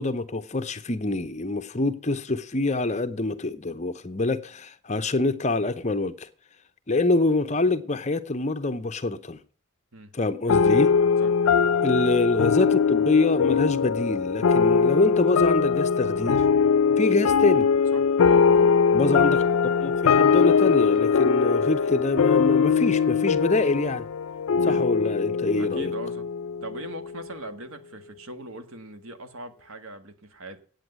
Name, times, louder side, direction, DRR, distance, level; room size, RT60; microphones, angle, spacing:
voice 1, 0.0-6.3 6.9-9.4 10.1-10.9 11.8-16.4 17.0-17.7 18.9-19.5 19.8-24.0 24.6-25.9, left 2 dB, 35° left, 0.7 m, -25 dB
sound 1, 10.5-27.3, left 6 dB, 90° left, 0.4 m, -21 dB
voice 2, 17.9-18.7 24.6-24.9 25.5-26.3 26.6-30.6, right 2 dB, 80° right, 1.5 m, -40 dB
8.8 x 7.8 x 8.0 m
head